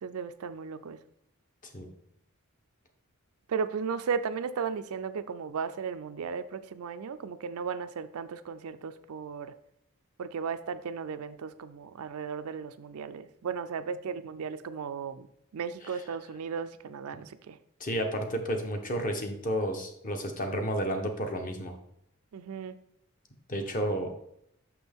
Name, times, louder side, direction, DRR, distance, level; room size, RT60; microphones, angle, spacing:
voice 1, 0.0-1.0 3.5-9.5 10.2-15.3 15.5-17.6 22.3-22.8, right 6 dB, 70° right, 11 dB, 0.4 m, -35 dB
voice 2, 17.8-21.8 23.5-24.1, equal, 40° left, 4 dB, 0.9 m, -31 dB
6.0 x 5.8 x 3.5 m, 0.73 s
head